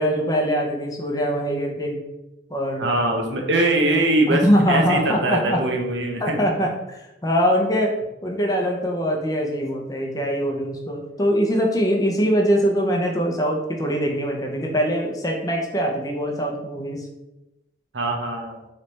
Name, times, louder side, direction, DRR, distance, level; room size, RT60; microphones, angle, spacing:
voice 1, 0.0-2.0 2.5-2.9 4.3-5.6 6.2-17.1, equal, 20° left, 1 dB, 0.6 m, -22 dB
voice 2, 2.8-4.4 4.7-6.4 17.9-18.6, right 2 dB, 85° right, 2 dB, 0.8 m, -22 dB
3.3 x 3.2 x 4.0 m, 0.94 s
head